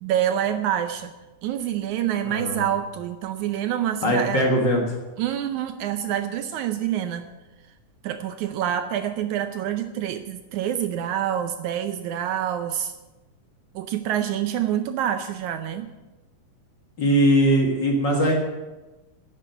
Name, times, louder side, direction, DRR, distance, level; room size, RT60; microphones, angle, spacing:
voice 1, 0.0-1.1 1.4-4.4 5.2-7.3 8.0-12.9 13.8-15.9, right 10 dB, 75° right, 9 dB, 1.9 m, -27 dB
voice 2, 2.3-2.6 4.0-5.0 17.0-18.3, equal, 40° left, 0 dB, 1.9 m, -20 dB
10.5 x 9.2 x 9.0 m, 1.1 s
omnidirectional pair, 3.8 m